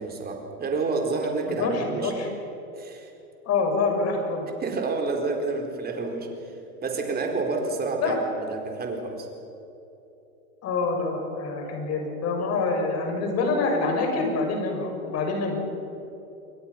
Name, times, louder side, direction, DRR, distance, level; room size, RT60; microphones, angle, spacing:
voice 1, 0.0-2.1 2.8-3.1 4.6-6.3 6.8-9.3, right 3 dB, 20° right, 2 dB, 4.4 m, -29 dB
voice 2, 1.5-2.3 3.4-4.5 8.0-8.2 10.6-15.5, left 3 dB, 35° left, 2 dB, 6.6 m, -26 dB
29.0 x 22.5 x 5.9 m, 2.9 s
hypercardioid pair, 120°, 44 cm